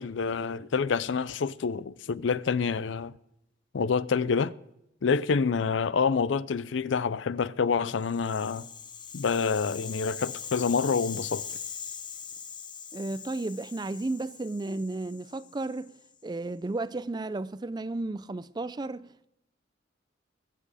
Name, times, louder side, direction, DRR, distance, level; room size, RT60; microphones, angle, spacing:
voice 1, 0.0-3.1 3.7-4.5 5.0-8.7 9.1-11.4, left 5 dB, 80° left, 0.5 m, -27 dB
Rattle (instrument), 7.9-16.1, left 7 dB, 25° left, 0.7 m, -41 dB
voice 2, 12.9-15.9 16.2-19.3, right 2 dB, 20° right, 0.4 m, -33 dB
21.5 x 7.5 x 4.9 m
head